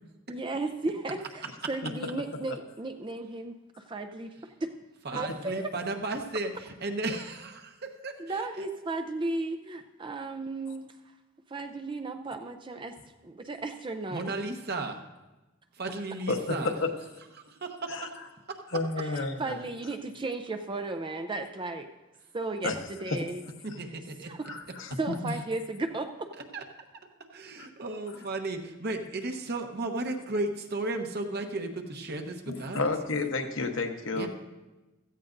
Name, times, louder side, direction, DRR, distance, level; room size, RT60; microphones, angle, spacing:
voice 1, 0.3-4.7 5.1-5.7 8.2-10.9 11.5-13.0 13.2-14.3 19.0-21.9 22.3-22.7 23.0-23.4 24.2-24.5 25.0-26.3, right 2 dB, 25° right, 6 dB, 0.5 m, -35 dB
voice 2, 5.0-8.6 14.1-15.0 15.7-16.7 17.5-18.1 18.5-18.6 23.6-24.3 26.4-26.6 27.3-32.9 34.2-34.3, right 2 dB, 50° right, 5 dB, 1.1 m, -34 dB
voice 3, 16.3-16.9 17.9-18.1 18.7-19.6 22.6-22.8 23.1-23.2 24.4-25.4 32.5-34.3, left 3 dB, 60° left, 4 dB, 1.1 m, -31 dB
16.0 x 14.0 x 2.6 m, 1.1 s
head